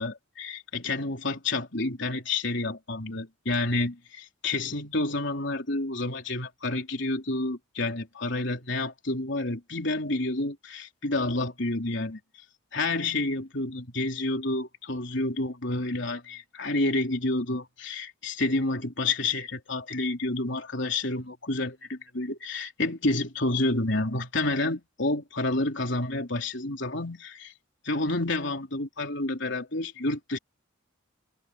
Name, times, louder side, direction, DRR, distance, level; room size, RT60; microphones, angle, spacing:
voice 1, 0.0-12.2 12.7-27.5 27.8-30.4, left 2 dB, 60° left, 3.8 m, -29 dB
head